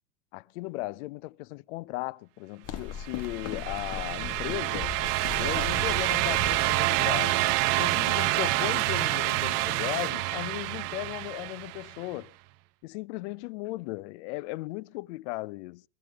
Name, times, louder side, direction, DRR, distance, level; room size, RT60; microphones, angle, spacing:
voice 1, 0.3-5.0 5.4-7.5 7.8-12.3 12.8-15.8, left 20 dB, 50° left, 0.6 m, -36 dB
sound 1, 2.6-7.7, left 10 dB, 30° left, 1.5 m, -39 dB
sound 2, 3.1-12.0, right 19 dB, 35° right, 0.7 m, -28 dB
sound 3, 5.0-10.1, right 11 dB, 80° right, 1.6 m, -38 dB
17.5 x 14.5 x 3.6 m
hypercardioid pair, 110°, 46 cm